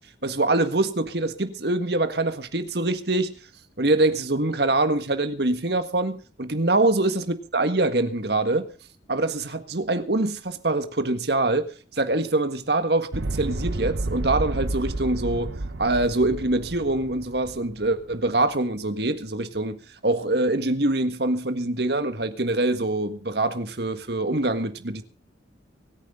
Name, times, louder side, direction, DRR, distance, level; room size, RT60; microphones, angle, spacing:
voice 1, 0.2-3.3 3.8-8.7 9.1-15.5 15.8-19.8 20.0-25.0, right 2 dB, 60° right, 1.7 m, -24 dB
sound 1, 13.1-18.3, right 2 dB, 85° right, 1.0 m, -31 dB
24.5 x 9.8 x 3.8 m
head